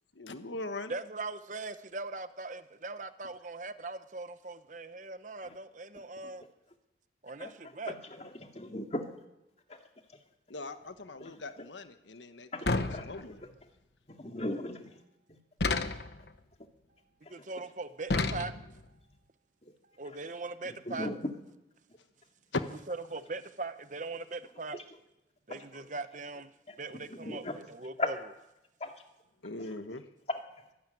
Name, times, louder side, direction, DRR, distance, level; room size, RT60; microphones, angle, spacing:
voice 1, 0.1-0.9 10.5-12.5 13.0-13.4 22.5-22.6 29.4-30.0, left 2 dB, 85° left, 9 dB, 1.3 m, -39 dB
voice 2, 0.9-6.4 7.2-7.9 17.3-18.5 20.0-21.1 22.9-24.8 25.5-26.5 26.8-28.1, right 3 dB, 45° right, 11 dB, 0.9 m, -40 dB
voice 3, 5.9-6.5 7.4-7.5 7.9-9.1 9.7-10.2 11.2-11.4 12.5-13.1 13.4-13.5 14.1-15.0 15.3-15.4 17.2-17.6 19.6-19.7 20.0-20.3 20.6-21.4 24.7-24.8 25.5-25.9 26.7-27.6 28.0-28.1 28.8-29.0 29.6-30.0 30.3-30.6, left 2 dB, 35° left, 4 dB, 2.4 m, -39 dB
sound 1, 12.7-13.6 15.6-16.3 18.1-18.9, left 3 dB, 65° left, 1.2 m, -31 dB
24.0 x 12.5 x 9.3 m, 0.92 s
head